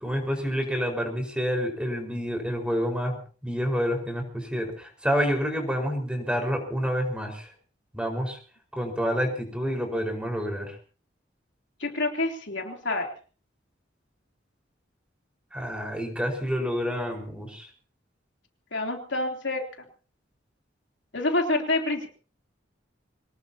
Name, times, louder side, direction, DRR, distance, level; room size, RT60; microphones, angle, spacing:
voice 1, 0.0-7.5 7.9-8.4 8.7-10.8 15.5-17.7, equal, 5° right, 2 dB, 5.1 m, -28 dB
voice 2, 11.8-13.1 18.7-19.6 21.1-22.1, left 2 dB, 70° left, 1 dB, 3.4 m, -27 dB
25.0 x 19.5 x 2.9 m, 0.40 s
head